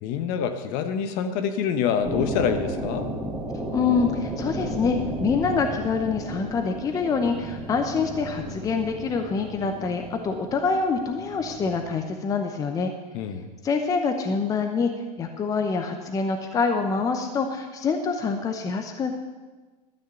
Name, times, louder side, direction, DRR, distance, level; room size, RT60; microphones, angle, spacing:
voice 1, 0.0-3.1 13.1-13.5, left 7 dB, 40° left, 9 dB, 1.1 m, -26 dB
sound 1, 2.0-11.9, right 1 dB, 5° right, 1.8 m, -34 dB
voice 2, 3.7-12.9 13.6-14.9 15.2-19.1, left 5 dB, 15° left, 5 dB, 0.8 m, -26 dB
13.0 x 6.5 x 7.9 m, 1.3 s
supercardioid pair, 140°, 21 cm